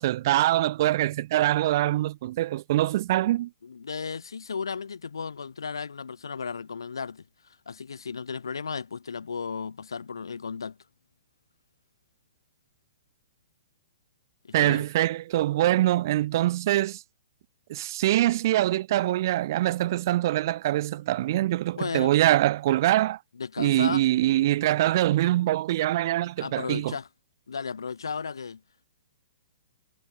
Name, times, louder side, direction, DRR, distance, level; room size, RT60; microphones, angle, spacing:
voice 1, 0.0-3.5 14.5-17.0 17.7-23.2 23.6-26.9, right 15 dB, 50° right, 2.3 m, -24 dB
voice 2, 3.6-7.3 7.7-10.8 14.4-14.9 21.8-22.1 23.3-24.0 26.2-27.1 27.5-28.6, left 5 dB, 80° left, 6.2 m, -34 dB
hypercardioid pair, 125°, 2 cm